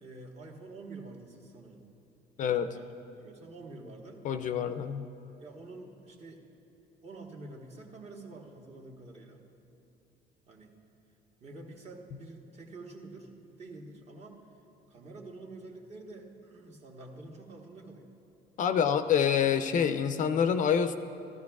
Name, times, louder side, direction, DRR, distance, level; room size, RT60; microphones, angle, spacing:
voice 1, 0.0-1.9 2.7-4.2 5.4-6.4 7.0-9.4 10.5-10.7 11.4-13.3 13.6-14.4 14.9-18.1, right 2 dB, 40° right, 0 dB, 1.3 m, -47 dB
voice 2, 2.4-2.7 4.2-5.0 18.6-20.9, left 8 dB, 50° left, 10 dB, 0.4 m, -26 dB
13.5 x 13.0 x 2.4 m, 2.8 s
cardioid pair, 110°, 17 cm